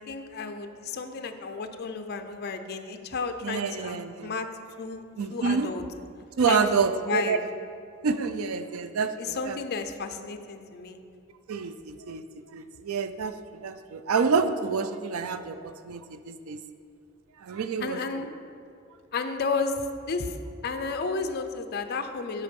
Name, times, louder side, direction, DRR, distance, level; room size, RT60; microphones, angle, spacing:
voice 1, 0.0-4.5 4.8-5.0 5.3-5.8 6.5-6.6 6.9-7.4 9.2-11.0 17.8-18.3 19.1-20.3 20.6-22.4, left 4 dB, 50° left, 8 dB, 0.5 m, -32 dB
voice 2, 3.4-4.4 5.2-5.7 6.4-7.4 8.0-9.6 11.5-16.6 17.4-18.3, right 5 dB, 80° right, 11 dB, 0.4 m, -28 dB
8.2 x 4.8 x 5.3 m, 2.4 s
head